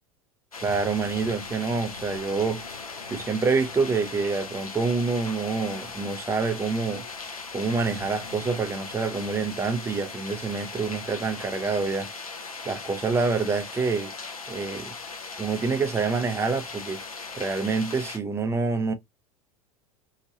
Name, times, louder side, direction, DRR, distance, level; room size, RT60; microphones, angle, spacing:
sound 1, 0.5-18.2, left 4 dB, 85° left, 0.6 m, -38 dB
voice 1, 0.6-2.6 3.1-7.0 7.5-12.1 12.6-14.1 14.5-14.9 15.4-17.0 17.3-18.9, right 4 dB, 15° right, 0.6 m, -27 dB
2.9 x 2.6 x 2.7 m
figure-of-eight pair, 80°, 18 cm